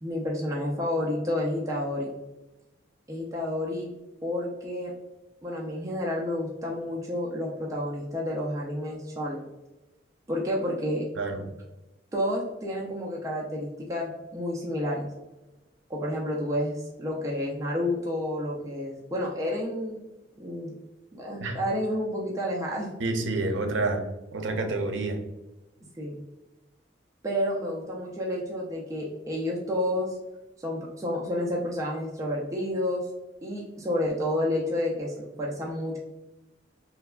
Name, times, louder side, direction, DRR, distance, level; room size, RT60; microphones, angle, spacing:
voice 1, 0.0-2.1 3.1-3.9 4.2-4.9 5.4-9.5 10.3-11.1 12.1-15.1 15.9-20.0 20.4-20.7 21.1-22.9 26.0-26.2 27.2-30.2 30.6-33.1 33.4-36.0, left 1 dB, 20° right, -3 dB, 0.3 m, -30 dB
voice 2, 23.0-24.0 24.3-25.2, right 2 dB, 90° right, 4 dB, 0.5 m, -28 dB
3.3 x 2.1 x 2.2 m, 1.0 s
head